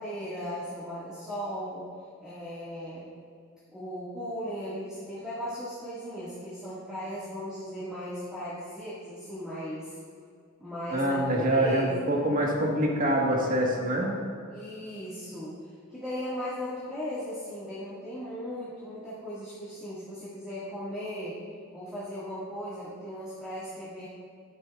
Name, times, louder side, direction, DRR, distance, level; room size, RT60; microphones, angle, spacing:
voice 1, 0.0-1.8 2.2-3.1 3.7-9.9 10.6-12.2 14.5-21.4 21.7-24.1, equal, 5° right, -11 dB, 1.8 m, -37 dB
voice 2, 10.9-14.1, right 1 dB, 40° right, -1 dB, 1.5 m, -25 dB
12.0 x 10.0 x 2.4 m, 2.4 s
head